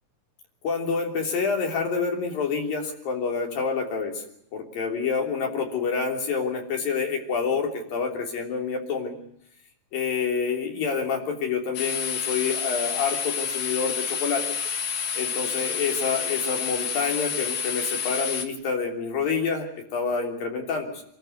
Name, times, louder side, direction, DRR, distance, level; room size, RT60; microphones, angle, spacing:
voice 1, 0.6-4.2 4.5-9.2 9.9-14.4 15.1-21.0, left 5 dB, 85° left, 2 dB, 5.1 m, -27 dB
sound 1, 11.7-18.4, left 6 dB, 60° left, 3.0 m, -29 dB
27.0 x 13.5 x 9.5 m, 0.75 s
omnidirectional pair, 3.9 m